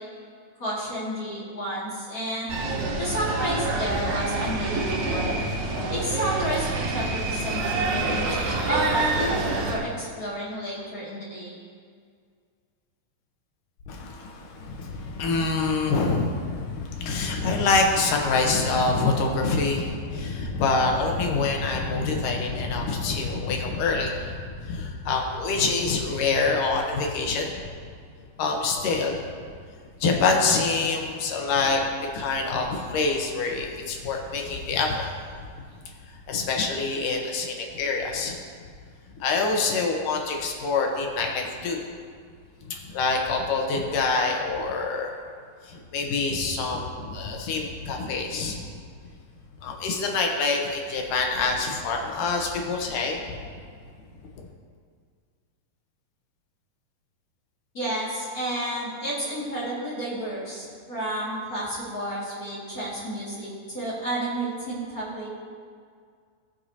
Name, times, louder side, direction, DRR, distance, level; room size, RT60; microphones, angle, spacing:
voice 1, 0.6-2.6 3.0-5.3 5.9-11.6 57.7-65.3, right 1 dB, 30° left, -7 dB, 2.1 m, -31 dB
sound 1, 2.5-9.8, right 3 dB, 90° right, 3.1 m, -27 dB
voice 2, 13.9-27.6 28.4-29.2 30.0-35.0 36.3-38.3 39.2-41.8 42.9-45.1 45.7-48.6 49.6-53.4, left 4 dB, 75° left, 1 dB, 2.6 m, -26 dB
18.5 x 6.7 x 2.8 m, 2.1 s
omnidirectional pair, 4.0 m